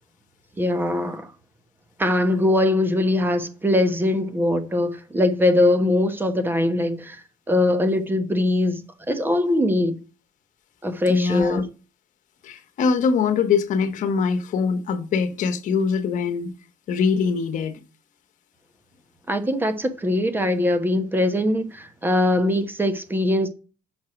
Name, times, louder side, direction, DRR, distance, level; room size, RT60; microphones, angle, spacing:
voice 1, 0.6-1.3 2.0-9.9 10.8-11.7 19.3-23.5, left 1 dB, 15° right, 1.1 m, -22 dB
voice 2, 11.1-11.6 12.4-16.5 16.9-17.8, left 5 dB, 60° left, 1.3 m, -23 dB
6.1 x 4.7 x 5.9 m
cardioid pair, 105°, 14 cm